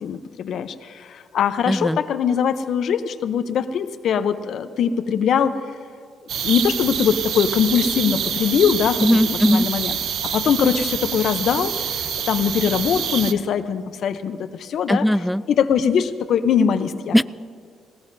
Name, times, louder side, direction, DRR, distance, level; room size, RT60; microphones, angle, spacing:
voice 1, 0.0-5.6 6.4-10.0 10.2-15.0 15.5-17.1, left 7 dB, 70° left, 11 dB, 0.7 m, -22 dB
voice 2, 1.7-2.0 9.0-9.7 14.9-15.4 17.1-17.2, equal, ahead, 16 dB, 0.3 m, -18 dB
sound 1, 6.3-13.3, right 8 dB, 75° right, 0.7 m, -26 dB
19.5 x 19.0 x 2.7 m, 2.2 s
cardioid pair, 90°, 0 cm